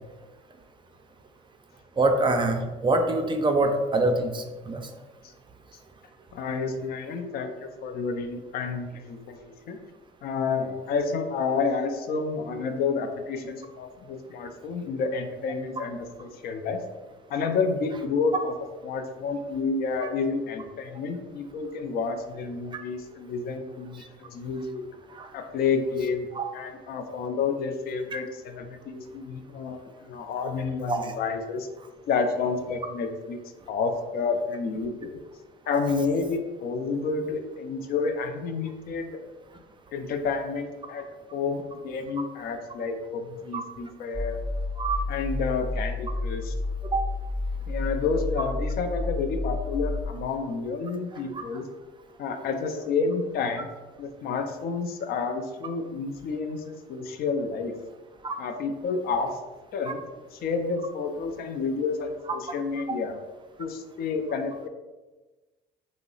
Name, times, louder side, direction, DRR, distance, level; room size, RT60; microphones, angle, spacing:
voice 1, 2.0-4.8 25.1-25.3 26.4-26.5 28.1-28.2 30.9-31.0 44.8-45.0 46.9-47.0 58.2-58.4, right 2 dB, 25° right, 5 dB, 0.4 m, -24 dB
voice 2, 6.3-9.8 10.2-16.8 17.3-18.5 18.8-24.8 25.3-26.3 26.5-31.7 32.1-33.4 33.7-35.2 35.7-39.1 39.9-41.0 41.3-44.4 45.1-46.5 47.7-51.7 52.2-53.7 54.0-57.7 58.4-59.4 59.7-60.0 60.3-63.2 63.6-64.7, left 4 dB, 55° left, 6 dB, 0.4 m, -30 dB
sound 1, 44.1-50.0, left 2 dB, 25° left, 0.7 m, -30 dB
2.8 x 2.0 x 3.8 m, 1.2 s
supercardioid pair, 90°, 19 cm